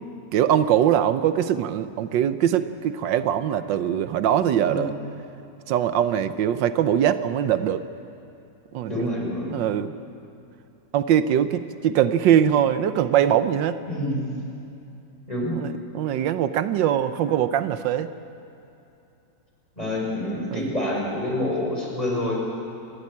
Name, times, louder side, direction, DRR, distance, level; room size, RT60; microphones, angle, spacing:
voice 1, 0.3-4.9 5.7-7.8 8.7-9.1 9.5-9.9 10.9-13.8 15.5-18.1 20.5-20.7, right 10 dB, 85° right, 12 dB, 1.4 m, -22 dB
voice 2, 4.6-4.9 8.9-9.6 13.9-14.2 15.3-15.5 19.8-22.4, left 1 dB, 20° left, -2 dB, 4.7 m, -27 dB
28.5 x 13.5 x 8.5 m, 2.8 s
omnidirectional pair, 1.9 m